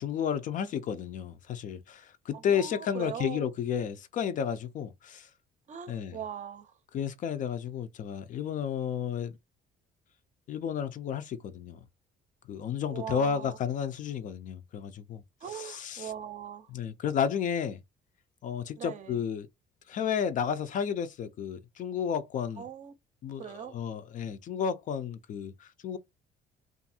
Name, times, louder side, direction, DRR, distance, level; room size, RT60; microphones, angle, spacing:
voice 1, 0.0-5.3 5.9-6.2 6.9-9.4 10.5-11.8 12.5-15.2 15.5-16.1 16.7-17.8 18.4-19.5 19.9-22.6 23.2-26.0, left 8 dB, 50° left, 0.4 m, -32 dB
voice 2, 2.3-3.5 5.7-6.7 12.9-13.6 15.4-16.7 18.8-19.2 22.6-22.9 23.4-23.8, right 9 dB, 45° right, 0.5 m, -40 dB
2.5 x 2.4 x 2.7 m
cardioid pair, 110°, 17 cm